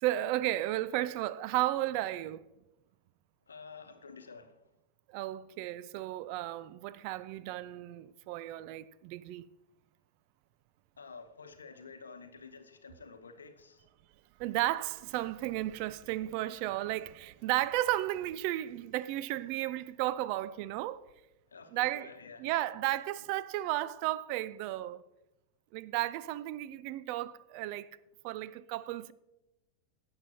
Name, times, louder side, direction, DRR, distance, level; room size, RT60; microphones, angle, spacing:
voice 1, 0.0-2.5 5.1-9.4 14.4-21.1 21.7-22.1 22.4-25.0 25.7-27.9 28.2-29.1, right 15 dB, 45° right, 0.4 m, -34 dB
voice 2, 3.5-4.6 11.0-13.9 16.2-16.3 21.5-22.5, left 4 dB, 70° left, 0.9 m, -50 dB
17.5 x 7.7 x 2.9 m
figure-of-eight pair, 90°, 0 cm